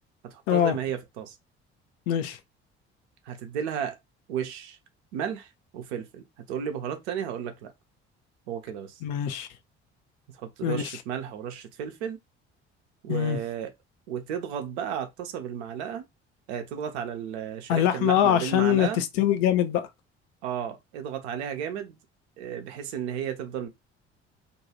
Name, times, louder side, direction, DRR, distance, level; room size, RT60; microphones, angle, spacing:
voice 1, 0.3-1.4 3.3-4.0 4.3-4.8 5.1-7.7 8.5-9.0 10.3-12.2 13.0-13.7 14.1-16.0 16.5-19.0 20.4-22.0 22.4-23.7, right 8 dB, 70° right, 0.7 m, -33 dB
voice 2, 2.1-2.4 9.0-9.5 10.6-11.0 13.1-13.4 17.7-19.9, left 10 dB, 60° left, 0.6 m, -23 dB
2.6 x 2.3 x 2.8 m
figure-of-eight pair, 50°, 34 cm